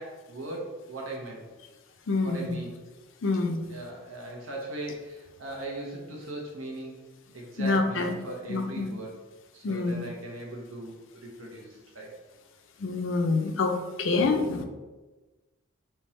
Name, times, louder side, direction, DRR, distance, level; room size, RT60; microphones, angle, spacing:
voice 1, 0.0-1.4 2.2-2.8 3.7-7.0 7.3-9.1 9.5-12.1, right 1 dB, 80° right, -1 dB, 1.0 m, -39 dB
voice 2, 2.1-2.6 3.2-3.6 7.6-8.1 8.5-8.9 9.6-10.1 12.8-14.6, left 3 dB, 65° left, 6 dB, 0.5 m, -26 dB
3.5 x 3.0 x 4.2 m, 1.2 s
head